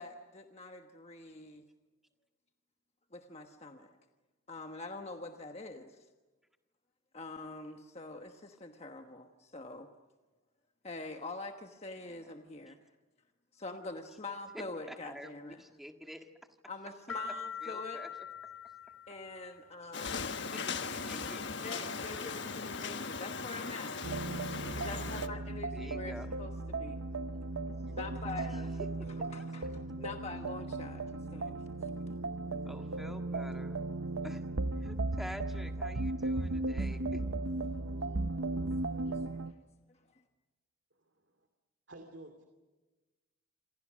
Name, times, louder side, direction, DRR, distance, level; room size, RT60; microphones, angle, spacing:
voice 1, 0.0-1.6 3.1-4.0 4.5-6.1 7.1-9.9 10.8-12.8 13.5-15.6 16.7-18.0 19.1-20.3 21.6-23.9 24.7-27.0 27.9-28.8 29.3-31.0 31.3-32.2 40.1-40.2, left 3 dB, 30° left, 5 dB, 1.2 m, -45 dB
voice 2, 14.5-16.3 17.6-18.3 20.5-21.6 25.7-26.3 28.4-28.9 29.2-29.3 32.7-33.8 34.2-34.4 34.8-37.2, equal, ahead, 5 dB, 1.7 m, -48 dB
sound 1, 17.1-19.7, left 7 dB, 80° left, 2.6 m, -43 dB
sound 2, 19.9-25.3, left 5 dB, 55° left, 1.3 m, -38 dB
sound 3, 24.0-39.5, right 2 dB, 75° right, 0.9 m, -36 dB
voice 3, 40.9-41.5 41.9-42.5, right 1 dB, 60° right, 6 dB, 2.4 m, -52 dB
27.5 x 27.5 x 6.4 m, 1.2 s
head